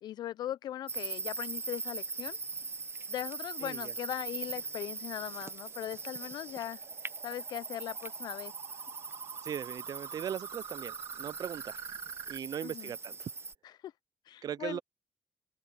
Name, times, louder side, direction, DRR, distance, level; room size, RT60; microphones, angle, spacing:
voice 1, 0.0-2.4 3.1-6.8 7.2-8.5 12.6-12.9 13.8-13.9 14.3-14.8, left 12 dB, 80° left, 0.7 m, -39 dB
country crickets, 0.9-13.5, right 4 dB, 35° right, 1.1 m, -41 dB
voice 2, 3.6-3.9 9.4-11.8 12.3-13.3 14.4-14.8, right 9 dB, 65° right, 0.6 m, -39 dB
sound 1, 4.3-12.4, right 12 dB, 85° right, 2.8 m, -49 dB
supercardioid pair, 45°, 7 cm